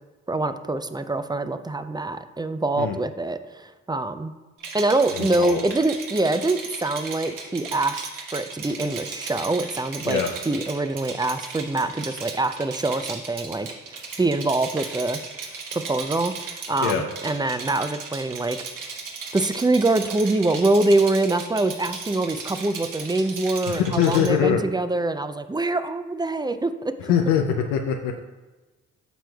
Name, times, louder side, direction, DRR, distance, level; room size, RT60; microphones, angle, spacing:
voice 1, 0.3-4.3 4.7-15.2 15.7-18.6 19.3-26.7, right 2 dB, 15° right, 10 dB, 0.5 m, -24 dB
Rattle, 4.6-24.3, right 5 dB, 70° right, 1.4 m, -36 dB
voice 2, 5.1-5.6 10.0-10.3 16.8-17.0 23.7-24.6 27.0-28.2, left 8 dB, 90° left, 3 dB, 0.6 m, -23 dB
9.2 x 6.0 x 2.3 m, 1.2 s
supercardioid pair, 50°, 33 cm